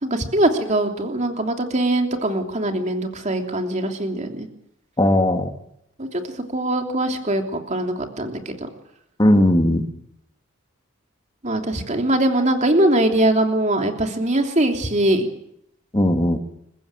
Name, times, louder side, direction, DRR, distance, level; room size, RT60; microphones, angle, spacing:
voice 1, 0.0-4.5 6.0-6.2 6.5-8.5 11.4-15.3, right 1 dB, 35° right, 4 dB, 3.1 m, -21 dB
voice 2, 5.0-5.5 9.2-9.9 15.9-16.4, left 1 dB, 20° left, 6 dB, 2.0 m, -17 dB
28.0 x 15.5 x 9.0 m, 0.78 s
head